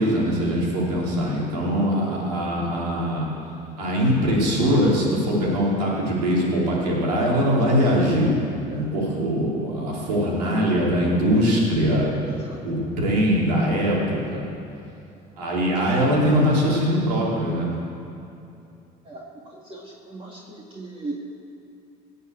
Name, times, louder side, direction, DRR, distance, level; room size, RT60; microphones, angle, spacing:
voice 1, 0.0-3.3 3.8-8.3 8.7-12.1 12.6-14.5 15.4-17.7, equal, 90° right, -4 dB, 3.6 m, -22 dB
voice 2, 12.2-12.6 19.0-19.2 19.5-21.1, right 2 dB, 25° right, -3 dB, 2.2 m, -37 dB
18.5 x 6.6 x 8.2 m, 2.6 s
hypercardioid pair, 70°, 20 cm